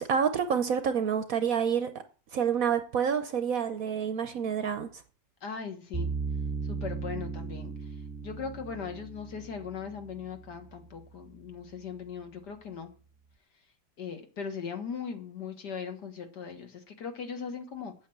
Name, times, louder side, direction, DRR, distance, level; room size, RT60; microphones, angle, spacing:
voice 1, 0.0-1.9 2.3-4.9, right 7 dB, 60° right, 1.0 m, -28 dB
voice 2, 5.4-6.1 6.7-7.7 8.2-12.9 14.0-17.9, left 6 dB, 65° left, 2.1 m, -39 dB
sound 1, 5.9-11.1, right 5 dB, 10° right, 1.0 m, -37 dB
8.4 x 7.7 x 7.9 m
omnidirectional pair, 2.0 m